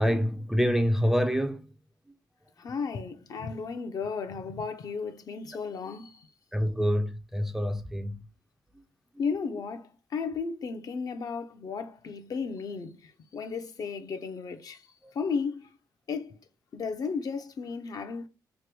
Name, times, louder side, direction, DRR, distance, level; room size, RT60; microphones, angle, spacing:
voice 1, 0.0-1.8 2.7-2.8 6.5-8.3 8.7-8.8 15.0-15.1, equal, 5° right, 0.4 m, -27 dB
voice 2, 2.6-6.3 9.2-14.8 15.1-15.7 16.1-16.4 16.7-18.3, left 5 dB, 55° left, 0.6 m, -34 dB
3.0 x 2.2 x 3.3 m
cardioid pair, 90°, 8 cm